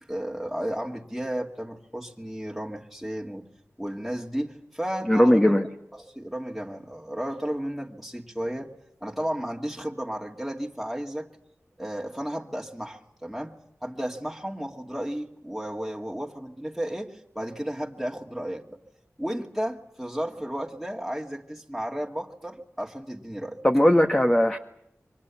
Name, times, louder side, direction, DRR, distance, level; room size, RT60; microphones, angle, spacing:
voice 1, 0.1-3.5 3.8-5.6 5.9-8.7 9.0-11.3 11.8-13.5 13.8-18.8 19.2-23.6, equal, ahead, -1 dB, 2.5 m, -33 dB
voice 2, 5.1-5.6 23.6-24.6, equal, 15° left, 4 dB, 1.7 m, -18 dB
28.5 x 23.5 x 7.3 m, 0.77 s
wide cardioid pair, 45°, 5 cm